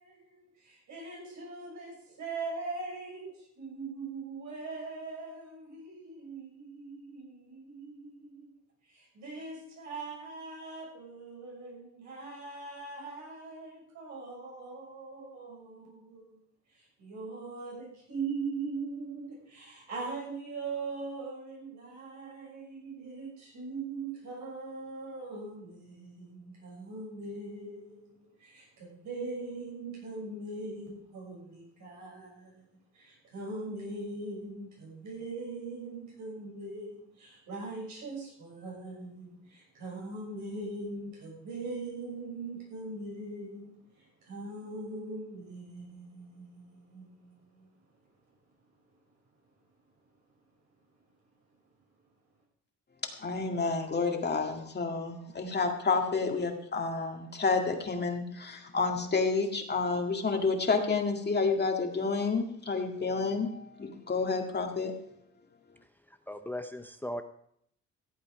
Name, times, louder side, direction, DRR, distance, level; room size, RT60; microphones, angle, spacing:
voice 1, 0.0-8.5 8.9-16.4 16.7-32.6 32.9-47.7, right 3 dB, 80° right, -2 dB, 6.7 m, -41 dB
voice 2, 53.2-64.9, left 4 dB, 35° left, 3 dB, 2.0 m, -30 dB
voice 3, 66.1-67.2, left 1 dB, 5° left, 8 dB, 0.7 m, -38 dB
15.0 x 8.4 x 4.9 m, 0.69 s
cardioid pair, 95°, 29 cm